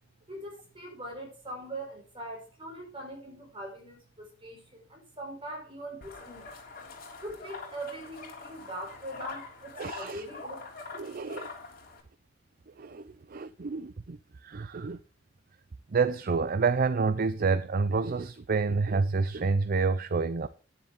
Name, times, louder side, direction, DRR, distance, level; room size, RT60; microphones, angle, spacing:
voice 1, 0.3-6.5 7.2-10.7, right 1 dB, 25° right, 5.1 m, -41 dB
sound 1, 6.0-12.0, left 4 dB, 50° left, 3.4 m, -44 dB
voice 2, 9.8-10.2 11.0-11.5 12.8-15.0 15.9-20.5, right 4 dB, 50° right, 0.5 m, -28 dB
10.5 x 10.0 x 3.8 m
head